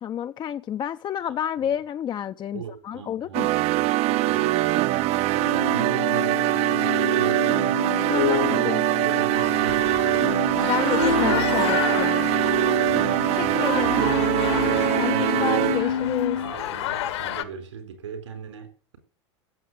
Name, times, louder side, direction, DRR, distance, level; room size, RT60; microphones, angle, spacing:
voice 1, 0.0-3.5 8.1-8.8 10.6-12.3 13.4-14.0 15.0-16.4, left 9 dB, 30° left, 0.5 m, -30 dB
voice 2, 2.5-7.8 8.2-10.2 12.9-14.2 14.6-19.0, right 7 dB, 80° right, 4.3 m, -39 dB
sound 1, 3.3-16.0, right 17 dB, 45° right, 0.6 m, -23 dB
sound 2, 5.3-16.5, left 8 dB, 85° left, 0.5 m, -29 dB
sound 3, 9.3-17.4, left 13 dB, 70° left, 1.6 m, -32 dB
15.5 x 7.4 x 7.9 m
hypercardioid pair, 90°, 15 cm